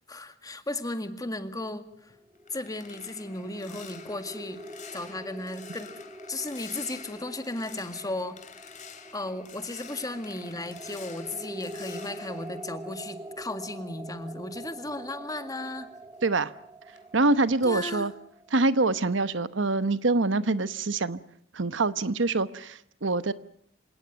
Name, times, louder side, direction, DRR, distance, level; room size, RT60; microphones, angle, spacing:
voice 1, 0.1-2.1 2.5-4.6 4.9-5.9 6.3-8.6 9.1-15.9 17.6-18.1, left 2 dB, 20° left, 9 dB, 1.9 m, -35 dB
sound 1, 1.9-13.6 13.9-16.6 16.9-17.2 17.6-17.9, left 7 dB, 40° left, 3.3 m, -49 dB
sound 2, 2.1-19.0, right 1 dB, 20° right, 1.5 m, -45 dB
voice 2, 16.2-16.5 17.1-18.1 18.5-21.2 21.5-23.3, right 3 dB, 70° right, 14 dB, 1.0 m, -25 dB
27.5 x 18.0 x 9.4 m, 0.66 s
head